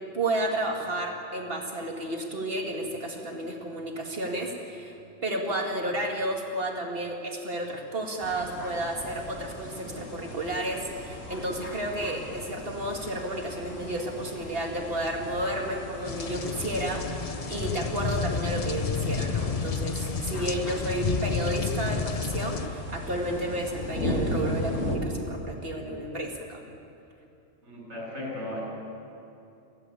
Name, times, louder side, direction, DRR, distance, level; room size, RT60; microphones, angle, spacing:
voice 1, 0.1-5.0 5.2-26.6, right 1 dB, 50° right, 1 dB, 2.6 m, -32 dB
sound 1, 8.2-25.0, left 1 dB, 85° left, 2.8 m, -37 dB
sound 2, 16.1-22.7, left 5 dB, 35° left, 0.7 m, -31 dB
voice 2, 27.6-28.6, left 1 dB, 65° right, -3 dB, 7.6 m, -36 dB
22.5 x 16.0 x 8.4 m, 2.8 s
omnidirectional pair, 1.3 m